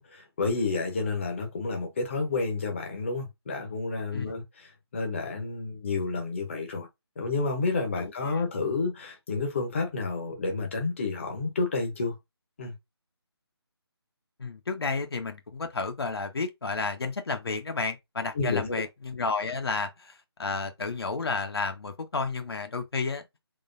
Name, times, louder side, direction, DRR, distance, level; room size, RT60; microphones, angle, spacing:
voice 1, 0.0-6.9 7.2-12.2 12.6-12.7 18.3-18.9, left 3 dB, 30° left, 0.8 m, -30 dB
voice 2, 14.4-23.2, left 4 dB, 65° left, 0.8 m, -31 dB
3.8 x 3.2 x 2.5 m
figure-of-eight pair, 170°, 14 cm